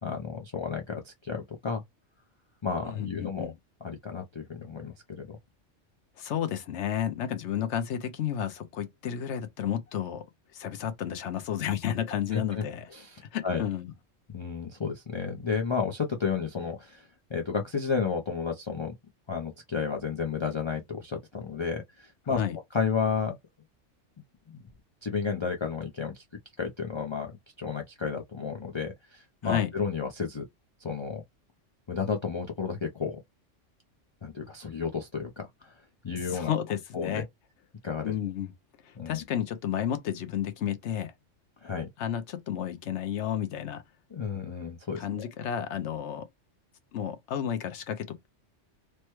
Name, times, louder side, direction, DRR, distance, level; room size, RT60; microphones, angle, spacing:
voice 1, 0.0-1.8 2.6-3.5 3.8-5.2 12.3-12.6 12.9-13.6 14.3-17.0 17.3-18.9 19.3-22.4 22.7-23.3 24.5-24.6 25.0-26.2 26.6-27.3 27.6-30.4 30.8-31.2 31.9-33.2 34.2-35.7 36.0-36.5 36.9-37.2 37.8-38.1 38.9-39.2 41.6-41.9 44.1-45.2, left 5 dB, 40° left, 0.4 m, -32 dB
voice 2, 2.8-3.5 6.2-10.3 10.5-12.9 13.3-13.9 22.4-22.6 29.4-29.7 36.2-37.3 38.0-38.5 38.8-41.1 42.0-43.8 45.0-46.3 46.9-48.3, left 9 dB, 70° left, 1.0 m, -31 dB
3.3 x 2.1 x 3.0 m
omnidirectional pair, 1.3 m